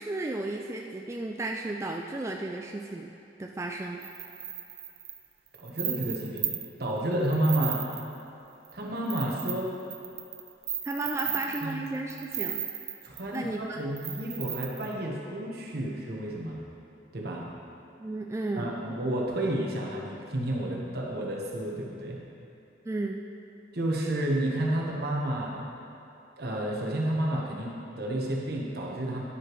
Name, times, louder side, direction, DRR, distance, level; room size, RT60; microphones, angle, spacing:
voice 1, 0.0-3.1 3.4-4.0 10.8-12.6 13.3-13.8 18.0-18.8 22.9-23.2, right 2 dB, 15° right, 1 dB, 0.3 m, -34 dB
sound 1, 4.0-6.8 7.2-8.2 8.6-8.7 9.1-13.4 14.0-14.9, right 10 dB, 40° right, 0.7 m, -35 dB
voice 2, 5.6-6.5 6.8-7.9 8.7-9.7 11.6-11.8 13.0-16.6 17.1-17.4 18.6-22.2 23.7-25.6 26.4-29.2, right 1 dB, 65° right, -2 dB, 1.2 m, -30 dB
9.9 x 8.0 x 3.1 m, 2.8 s
head